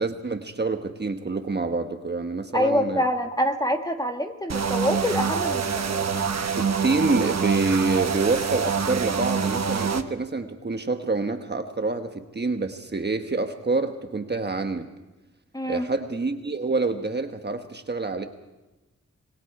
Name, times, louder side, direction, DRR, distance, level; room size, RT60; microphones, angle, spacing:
voice 1, 0.0-3.1 6.6-14.9 15.7-18.2, right 3 dB, 35° right, 6 dB, 1.2 m, -27 dB
voice 2, 2.5-6.0 15.5-15.9, equal, 10° left, 4 dB, 1.8 m, -26 dB
sound 1, 4.5-10.0, right 6 dB, 60° right, 1.2 m, -26 dB
26.5 x 20.5 x 4.9 m, 1.1 s
wide cardioid pair, 95°, 30 cm